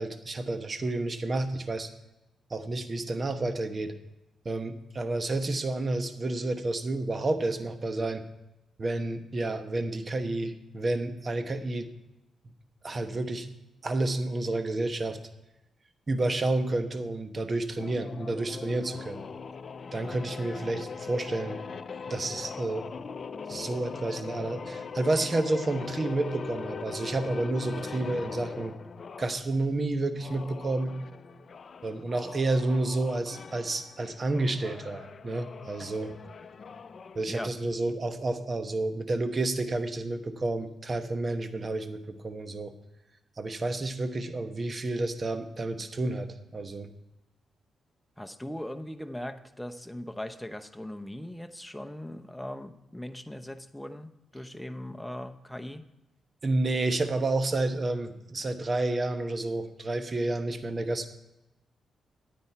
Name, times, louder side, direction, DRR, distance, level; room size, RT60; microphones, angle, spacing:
voice 1, 0.0-1.9 2.5-3.9 4.4-8.2 8.8-11.9 12.8-13.5 13.8-15.2 16.1-19.2 19.9-21.6 22.1-22.9 23.5-28.7 29.2-31.0 31.8-36.1 37.1-42.7 43.4-46.9 56.4-61.1, right 2 dB, 40° right, 10 dB, 1.0 m, -30 dB
sound 1, 17.8-29.4 30.1-37.2, left 5 dB, 55° left, 0.5 m, -41 dB
voice 2, 48.2-55.8, left 1 dB, 5° left, 7 dB, 0.9 m, -39 dB
9.6 x 8.6 x 4.5 m, 0.96 s
hypercardioid pair, 40°, 0 cm